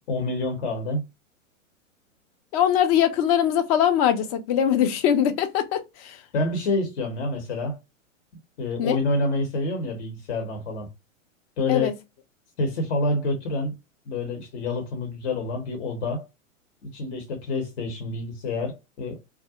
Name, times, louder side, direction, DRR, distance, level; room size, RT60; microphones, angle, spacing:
voice 1, 0.1-1.0 6.3-7.8 8.6-10.9 11.6-11.9 12.6-13.7 14.1-16.2 16.8-19.2, left 2 dB, 60° left, 1.0 m, -27 dB
voice 2, 2.5-6.2 8.8-9.0 11.7-11.9, left 9 dB, 30° left, 0.4 m, -22 dB
2.4 x 2.0 x 2.8 m
hypercardioid pair, 110°, 40 cm